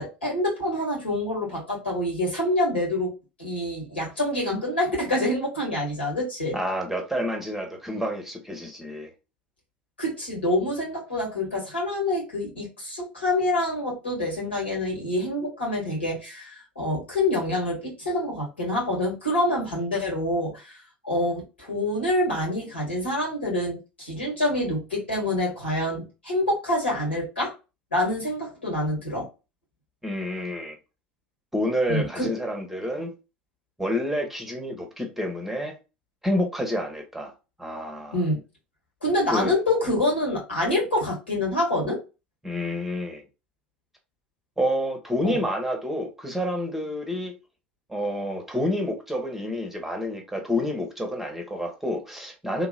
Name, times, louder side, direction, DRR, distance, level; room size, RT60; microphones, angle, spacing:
voice 1, 0.0-3.1 3.4-6.6 10.0-27.5 27.9-29.3 31.9-32.3 38.1-38.4 39.0-42.0 45.2-45.4, left 1 dB, 80° left, 1.9 m, -26 dB
voice 2, 6.5-9.1 30.0-30.8 31.5-33.1 33.8-35.7 36.2-37.3 37.6-38.2 39.3-39.5 42.4-43.2 44.6-47.3 47.9-52.7, left 1 dB, 5° right, 0.9 m, -28 dB
3.5 x 2.9 x 2.4 m
figure-of-eight pair, 75°, 6 cm